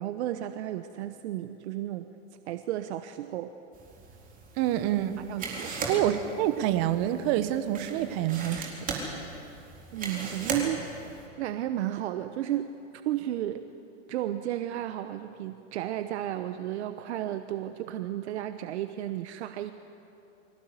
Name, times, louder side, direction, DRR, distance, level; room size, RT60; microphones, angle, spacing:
voice 1, 0.0-2.1 2.5-3.5 5.2-5.7 9.9-12.7 13.0-13.6 14.1-19.7, right 12 dB, 60° right, 9 dB, 1.0 m, -33 dB
sound 1, 3.7-11.3, right 3 dB, 20° right, 4.1 m, -38 dB
voice 2, 4.6-5.2 5.8-8.9, right 12 dB, 45° right, 10 dB, 1.5 m, -27 dB
24.5 x 17.0 x 8.2 m, 2.8 s
hypercardioid pair, 130°, 37 cm